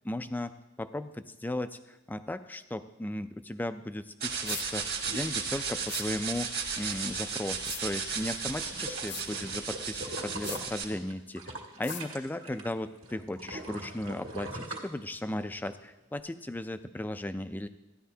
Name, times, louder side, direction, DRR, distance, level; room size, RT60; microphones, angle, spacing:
voice 1, 0.0-17.7, left 1 dB, 10° left, 11 dB, 0.3 m, -36 dB
sound 1, 4.2-10.8, right 5 dB, 50° right, 1.6 m, -35 dB
sound 2, 4.5-4.7 5.9-6.1 7.6-7.8 9.1-9.3 10.4-10.6 11.8-12.0, left 10 dB, 55° left, 0.6 m, -39 dB
sound 3, 8.6-12.7 13.0-15.5 16.0-16.1, right 1 dB, 65° right, 1.7 m, -41 dB
15.0 x 11.0 x 2.8 m, 0.98 s
head